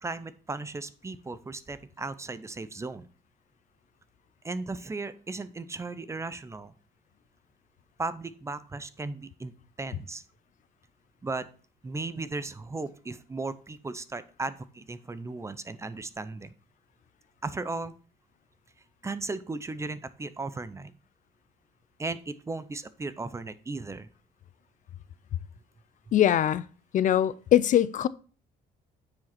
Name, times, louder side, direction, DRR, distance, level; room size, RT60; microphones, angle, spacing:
voice 1, 0.0-3.1 4.4-6.7 8.0-9.5 9.8-10.2 11.2-11.5 11.8-16.5 17.4-17.9 19.0-20.9 22.0-24.1, right 3 dB, 15° right, 0.6 m, -36 dB
voice 2, 26.1-26.6 26.9-28.1, left 11 dB, 50° left, 0.4 m, -22 dB
9.2 x 5.0 x 4.2 m
cardioid pair, 110°, 17 cm